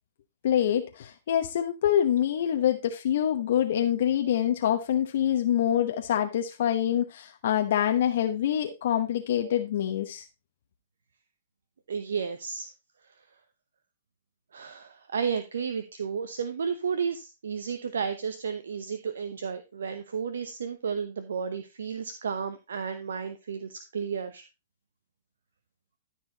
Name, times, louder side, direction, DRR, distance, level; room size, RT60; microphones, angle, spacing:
voice 1, 0.4-10.2, left 10 dB, 65° left, 1.0 m, -25 dB
voice 2, 11.9-12.7 14.5-24.4, right 6 dB, 75° right, 0.9 m, -32 dB
13.0 x 4.7 x 4.0 m
hypercardioid pair, 120°, 0 cm